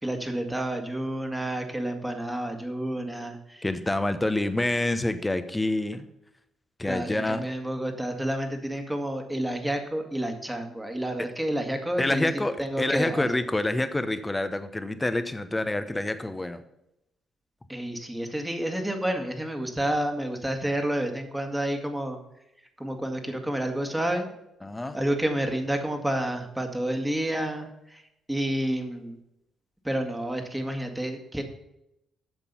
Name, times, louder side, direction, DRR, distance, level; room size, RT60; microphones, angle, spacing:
voice 1, 0.0-3.7 6.8-13.3 17.7-22.2 22.8-24.3 24.9-28.0 28.3-29.2 29.8-31.4, right 1 dB, 10° right, 4 dB, 1.8 m, -30 dB
voice 2, 3.6-6.0 6.8-7.5 12.0-16.6 24.6-25.0, left 2 dB, 15° left, 10 dB, 1.0 m, -27 dB
8.1 x 7.4 x 5.6 m, 0.84 s
hypercardioid pair, 45°, 0 cm